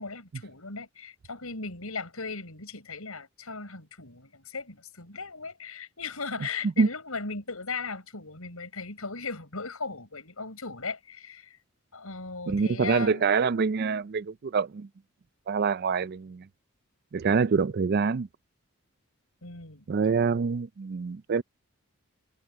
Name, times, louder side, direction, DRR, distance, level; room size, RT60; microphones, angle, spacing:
voice 1, 0.0-11.6 11.9-13.2 19.4-19.8, left 4 dB, 85° left, 5.8 m, -37 dB
voice 2, 12.5-14.9 15.5-16.5 17.1-18.3 19.9-21.4, right 5 dB, 50° right, 0.4 m, -25 dB
head